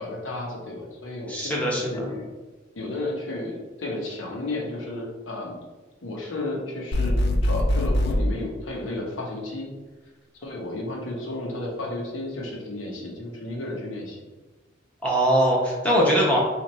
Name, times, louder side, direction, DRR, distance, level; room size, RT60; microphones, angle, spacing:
voice 1, 0.0-2.3 2.8-5.5 6.0-9.7 10.4-14.2, left 2 dB, 75° left, -1 dB, 0.8 m, -33 dB
voice 2, 1.3-2.1 15.0-16.4, equal, 5° left, -4 dB, 0.7 m, -21 dB
sound 1, 6.9-8.2, left 1 dB, 60° left, 0.4 m, -22 dB
3.0 x 2.5 x 4.1 m, 1.2 s
head